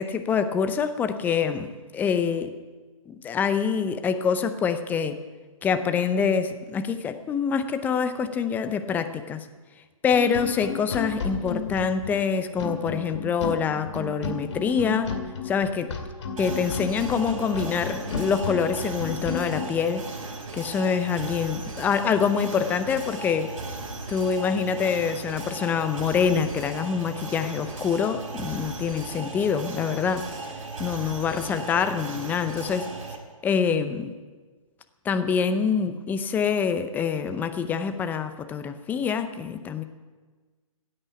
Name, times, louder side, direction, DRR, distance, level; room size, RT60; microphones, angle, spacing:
voice 1, 0.0-2.5 3.1-5.1 5.6-9.5 10.0-15.1 15.4-15.9 16.4-20.1 20.5-23.5 24.1-30.3 30.8-32.9 33.4-34.1 35.0-39.8, left 6 dB, 10° left, 9 dB, 0.6 m, -25 dB
sound 1, 10.1-19.7, left 4 dB, 55° left, 2.3 m, -33 dB
sound 2, 16.4-33.2, right 3 dB, 65° right, 4.7 m, -37 dB
16.0 x 8.7 x 8.4 m, 1.4 s
figure-of-eight pair, 140°, 18 cm